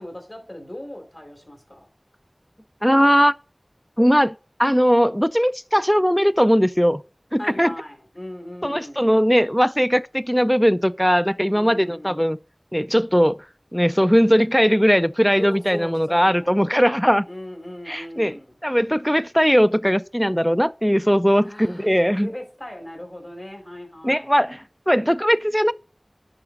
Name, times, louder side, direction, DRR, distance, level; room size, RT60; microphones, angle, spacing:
voice 1, 0.0-1.9 7.4-9.1 11.5-12.2 15.4-16.5 17.3-18.5 21.4-21.9 22.2-24.3, left 1 dB, 45° left, 4.3 m, -38 dB
voice 2, 2.8-3.3 4.0-4.3 4.6-7.0 7.3-7.7 8.6-12.4 12.7-13.5 13.7-17.3 17.9-18.4 18.6-22.3 24.0-25.7, equal, 5° left, 0.3 m, -19 dB
10.5 x 3.9 x 5.0 m
wide cardioid pair, 40°, 0 cm